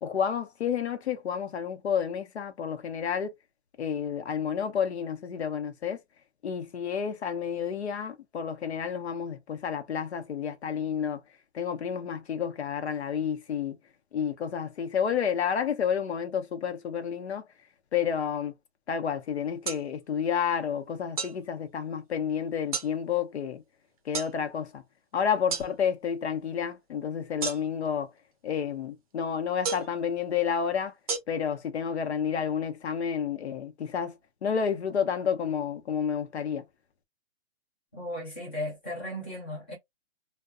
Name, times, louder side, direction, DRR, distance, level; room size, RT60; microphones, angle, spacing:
voice 1, 0.0-3.3 3.8-6.0 6.4-11.2 11.5-13.8 14.1-17.4 17.9-18.5 18.9-23.6 24.0-24.8 25.1-28.1 28.4-30.9 31.3-36.6, left 7 dB, 80° left, 0.8 m, -30 dB
sound 1, 19.6-19.8 21.2-21.4 22.7-22.9 24.1-24.3 25.5-25.7 27.4-27.9 29.6-30.0 31.1-31.2, right 5 dB, 35° right, 0.6 m, -31 dB
voice 2, 37.9-39.8, left 1 dB, 10° left, 0.4 m, -36 dB
2.6 x 2.2 x 2.3 m
hypercardioid pair, 165°, 32 cm